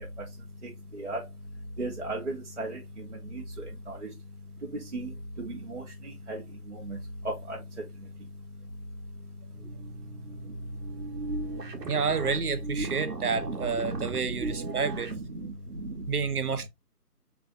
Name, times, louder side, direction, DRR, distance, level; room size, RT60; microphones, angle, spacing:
voice 1, 1.8-3.1 3.3-3.4 3.9-4.0 4.9-5.1 5.4-5.8 6.3-6.4 6.7-7.0 7.5-7.6 12.8-14.3 14.6-15.5 15.8-16.0, right 2 dB, 45° right, 1.0 m, -36 dB
sound 1, 9.5-15.2, right 2 dB, 85° right, 1.2 m, -37 dB
voice 2, 11.8-15.1 16.1-16.7, right 5 dB, 70° right, 0.8 m, -29 dB
4.8 x 3.3 x 2.4 m
figure-of-eight pair, 175°, 47 cm